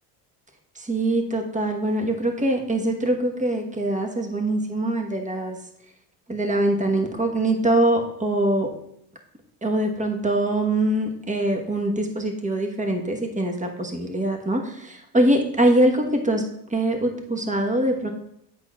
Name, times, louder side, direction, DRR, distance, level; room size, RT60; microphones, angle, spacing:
voice 1, 0.7-5.6 6.3-8.7 9.6-16.4 16.7-18.1, right 1 dB, 15° right, 3 dB, 1.2 m, -23 dB
8.1 x 5.8 x 2.4 m, 0.74 s
supercardioid pair, 80°, 45 cm